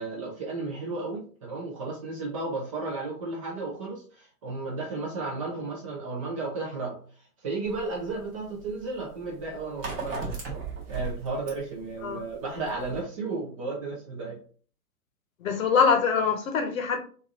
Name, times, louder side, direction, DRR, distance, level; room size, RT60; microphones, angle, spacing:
voice 1, 0.0-7.0 7.4-14.4, right 3 dB, 20° right, -2 dB, 0.5 m, -34 dB
sound 1, 7.7-13.0, right 4 dB, 40° right, 1.1 m, -38 dB
voice 2, 15.4-17.0, left 6 dB, 55° left, 5 dB, 0.9 m, -23 dB
3.2 x 2.6 x 2.4 m, 0.42 s
figure-of-eight pair, 115°, 48 cm